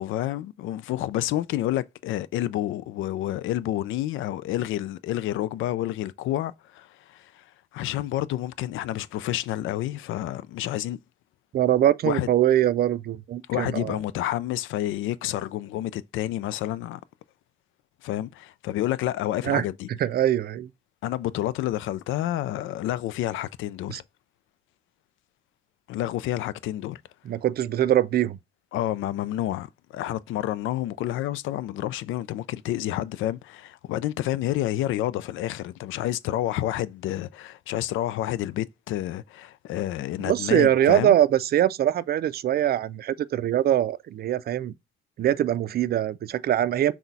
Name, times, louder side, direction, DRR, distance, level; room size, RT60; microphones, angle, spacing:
voice 1, 0.0-7.4 7.7-11.0 12.0-12.3 13.5-17.0 18.0-19.9 21.0-24.0 25.9-27.0 28.7-41.1, left 13 dB, 80° left, 0.4 m, -29 dB
voice 2, 11.5-14.0 19.4-19.6 20.0-20.7 23.9-24.0 27.2-28.4 40.3-44.7 45.2-46.9, right 11 dB, 50° right, 0.4 m, -23 dB
6.0 x 2.3 x 4.0 m
cardioid pair, 90°, 20 cm